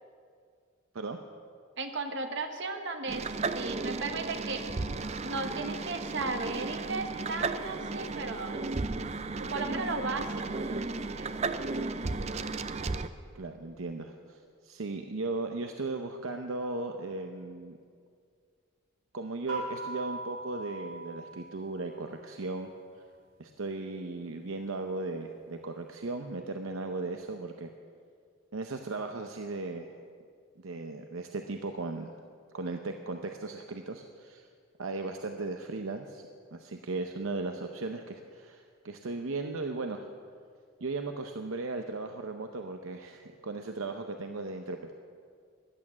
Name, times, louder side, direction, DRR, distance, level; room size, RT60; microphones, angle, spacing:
voice 1, 1.8-4.7 5.2-8.6 9.4-11.5 11.8-11.9, right 3 dB, 55° right, 6 dB, 1.3 m, -36 dB
sound 1, 3.1-13.1, right 3 dB, 30° right, 0.5 m, -34 dB
voice 2, 13.3-17.8 19.1-22.7 23.4-27.7 28.5-30.0 30.6-32.1 32.5-34.5 34.8-36.2 36.5-40.1 40.8-44.9, right 3 dB, 70° right, 5 dB, 0.8 m, -37 dB
sound 2, 19.5-22.2, right 2 dB, 90° right, 4.5 m, -40 dB
15.0 x 11.0 x 7.3 m, 2.2 s
head